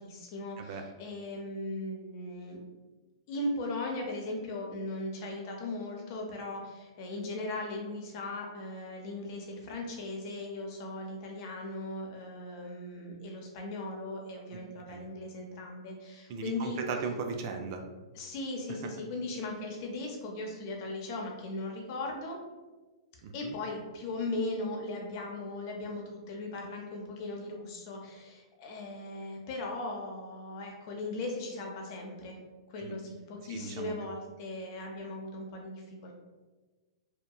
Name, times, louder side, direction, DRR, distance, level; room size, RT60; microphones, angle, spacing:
voice 1, 0.0-2.6 3.3-16.8 18.1-22.4 23.3-32.4 32.7-36.1, left 2 dB, 50° left, 1 dB, 0.6 m, -38 dB
voice 2, 16.3-17.8 23.2-23.6 32.8-33.0 33.5-33.9, right 5 dB, 50° right, 5 dB, 0.3 m, -37 dB
2.8 x 2.2 x 2.3 m, 1.3 s
hypercardioid pair, 120°, 3 cm